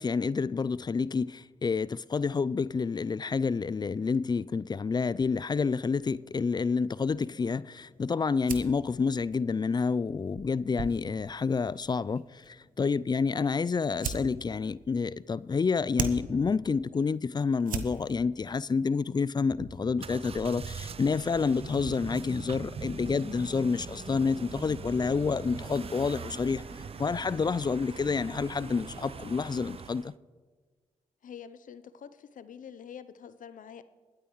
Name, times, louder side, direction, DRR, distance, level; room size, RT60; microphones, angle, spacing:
voice 1, 0.0-26.6 27.0-30.1, left 5 dB, 30° left, 0.4 m, -29 dB
sound 1, 5.1-22.0, right 6 dB, 70° right, 0.9 m, -43 dB
sound 2, 19.5-29.5, equal, 10° left, 2.5 m, -49 dB
sound 3, 20.0-30.1, right 6 dB, 40° right, 0.4 m, -42 dB
voice 2, 31.2-33.8, left 8 dB, 65° left, 0.7 m, -46 dB
21.5 x 9.2 x 3.2 m
hypercardioid pair, 40°, 15 cm